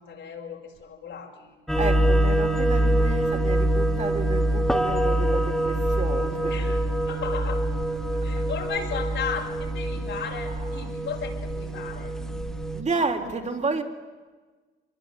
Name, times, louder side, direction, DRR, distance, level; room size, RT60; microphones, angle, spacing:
voice 1, 0.0-1.5 6.5-6.8 7.1-7.6 8.2-12.5, left 7 dB, 70° left, 1 dB, 6.1 m, -35 dB
sound 1, 1.7-12.8, right 1 dB, ahead, 2.4 m, -25 dB
voice 2, 1.8-6.8 10.4-10.9 12.7-13.8, right 4 dB, 35° right, 4 dB, 3.9 m, -31 dB
25.5 x 21.5 x 9.4 m, 1.3 s
cardioid pair, 90°, 20 cm